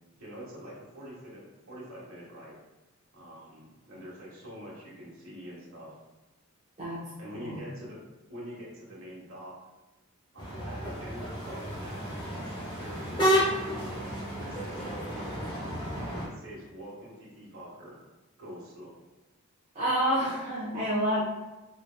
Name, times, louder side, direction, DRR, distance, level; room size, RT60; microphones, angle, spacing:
voice 1, 0.2-2.6 3.1-6.0 7.2-8.0 8.3-9.6 10.3-15.4 16.0-18.0 18.4-18.9 20.2-20.4, equal, 80° right, -6 dB, 1.4 m, -45 dB
sound 1, 10.4-16.3, equal, 20° left, 1.1 m, -31 dB
voice 2, 19.7-21.2, equal, 30° right, -10 dB, 0.9 m, -28 dB
4.1 x 3.2 x 2.2 m, 1.1 s
head